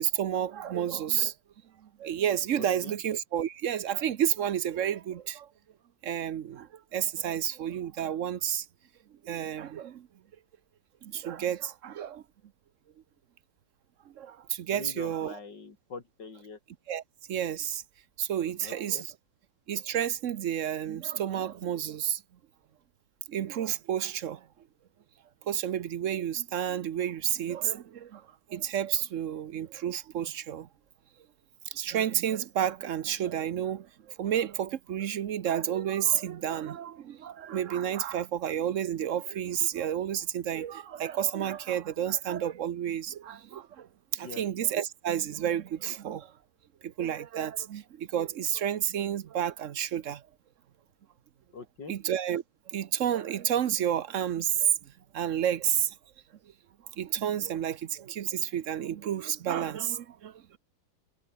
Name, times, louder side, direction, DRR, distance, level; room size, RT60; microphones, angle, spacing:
voice 1, 0.0-1.3 2.0-5.5 6.0-8.6 9.2-10.1 11.0-12.2 14.2-15.4 16.9-17.0 17.3-17.8 18.2-19.1 19.7-22.2 23.3-24.4 25.5-28.2 28.5-30.7 31.7-33.9 34.2-43.9 44.1-46.3 46.8-50.2 51.9-52.4 52.7-54.7 55.1-55.9 57.0-60.6, right 10 dB, 55° right, 0.9 m, -30 dB
voice 2, 2.6-3.0 14.7-16.6 18.6-19.1 44.2-44.4 51.5-51.9, left 4 dB, 90° left, 3.7 m, -44 dB
omnidirectional pair, 1.9 m